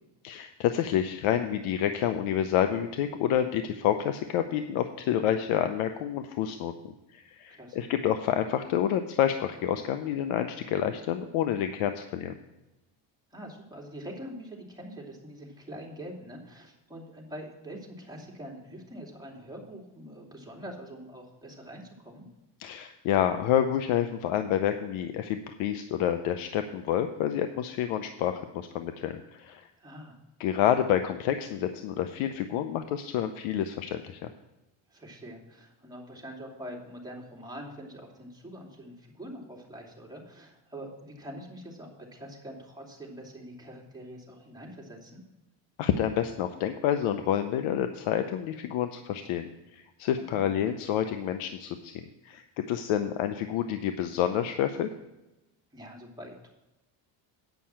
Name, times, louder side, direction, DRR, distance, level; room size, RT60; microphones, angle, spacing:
voice 1, 0.2-6.7 7.1-12.4 22.6-29.7 30.4-34.2 45.8-54.9, left 10 dB, 80° left, 8 dB, 0.8 m, -28 dB
voice 2, 7.5-7.9 13.3-22.3 29.8-30.2 34.9-45.2 50.3-50.5 55.7-56.5, equal, 10° right, -2 dB, 2.7 m, -44 dB
9.3 x 5.6 x 7.5 m, 0.97 s
cardioid pair, 105°, 49 cm